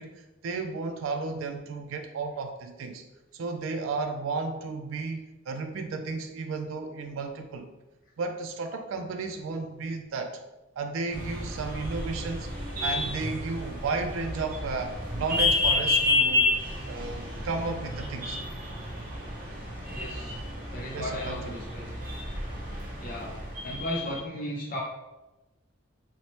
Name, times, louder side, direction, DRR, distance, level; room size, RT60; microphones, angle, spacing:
voice 1, 0.0-3.0 3.3-7.7 8.2-10.4 10.8-16.6 16.8-18.4 20.9-21.7, right 4 dB, 75° right, 5 dB, 0.3 m, -33 dB
sound 1, 11.1-24.2, left 2 dB, 45° right, 0.7 m, -30 dB
voice 2, 19.9-20.4 20.7-21.9 23.0-23.4 23.6-24.8, equal, 45° left, -3 dB, 0.5 m, -35 dB
3.0 x 2.1 x 4.1 m, 1.0 s
head